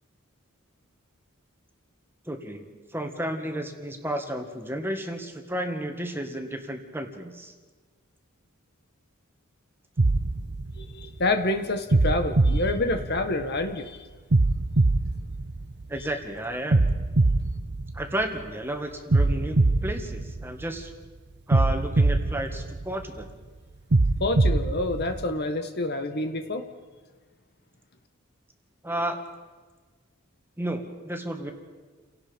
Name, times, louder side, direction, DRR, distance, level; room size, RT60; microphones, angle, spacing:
voice 1, 2.3-7.5 15.9-16.9 17.9-20.9 21.5-23.3 28.8-29.2 30.6-31.5, right 1 dB, 10° right, 4 dB, 1.9 m, -32 dB
sound 1, 10.0-11.3 11.9-13.6 14.3-16.1 16.7-18.5 19.1-20.9 21.5-23.2 23.9-25.3, right 2 dB, 55° right, 0.7 m, -23 dB
voice 2, 10.8-14.1 24.2-26.7, left 2 dB, 50° left, 7 dB, 1.5 m, -28 dB
30.0 x 18.0 x 5.3 m, 1.4 s
head